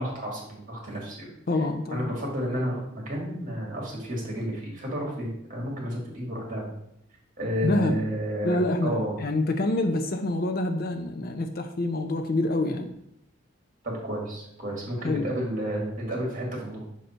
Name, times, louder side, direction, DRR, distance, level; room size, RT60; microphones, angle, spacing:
voice 1, 0.0-1.3 1.9-6.7 7.4-9.1 13.8-16.8, equal, 40° right, -2 dB, 2.1 m, -31 dB
voice 2, 1.5-2.1 7.6-8.0 8.4-12.9 15.0-15.3, left 2 dB, 45° left, 6 dB, 0.5 m, -26 dB
6.6 x 4.0 x 4.4 m, 0.77 s
head